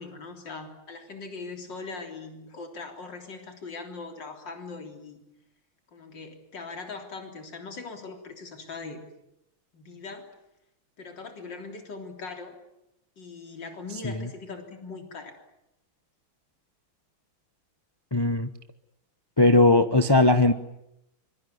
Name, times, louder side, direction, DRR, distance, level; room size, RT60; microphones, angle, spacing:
voice 1, 0.0-5.2 5.9-9.0 9.7-10.3 11.0-12.6 13.2-15.4, left 4 dB, 60° left, 4 dB, 4.2 m, -40 dB
voice 2, 18.1-18.5 19.4-20.5, left 2 dB, 20° left, 10 dB, 0.6 m, -19 dB
25.0 x 22.5 x 9.6 m, 0.86 s
omnidirectional pair, 2.2 m